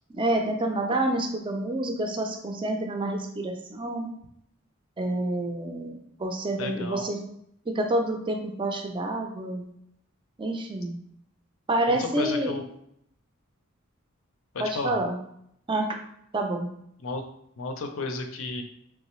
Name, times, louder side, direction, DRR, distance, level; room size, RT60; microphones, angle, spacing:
voice 1, 0.1-4.1 5.0-7.2 7.7-9.7 10.4-11.0 11.7-12.6 14.6-15.2 15.7-16.0 16.3-16.7, right 1 dB, 25° right, 3 dB, 0.4 m, -28 dB
voice 2, 6.6-7.0 11.9-12.7 14.5-15.0 17.0-17.2 17.6-18.6, left 3 dB, 65° left, 5 dB, 0.5 m, -33 dB
3.6 x 3.2 x 3.1 m, 0.72 s
head